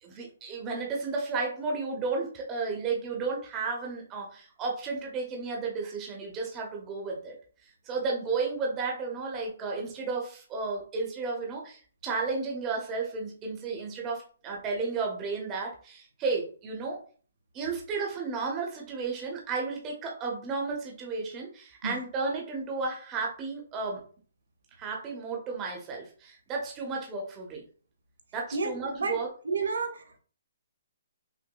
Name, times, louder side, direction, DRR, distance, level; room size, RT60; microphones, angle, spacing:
voice 1, 0.0-7.3 7.8-17.0 17.5-24.0 24.8-27.6 28.3-29.3, right 4 dB, 15° right, 0 dB, 0.7 m, -33 dB
voice 2, 28.5-29.2 29.4-30.2, right 4 dB, 85° right, 6 dB, 0.8 m, -31 dB
5.8 x 2.1 x 2.2 m, 0.41 s
hypercardioid pair, 170°, 0 cm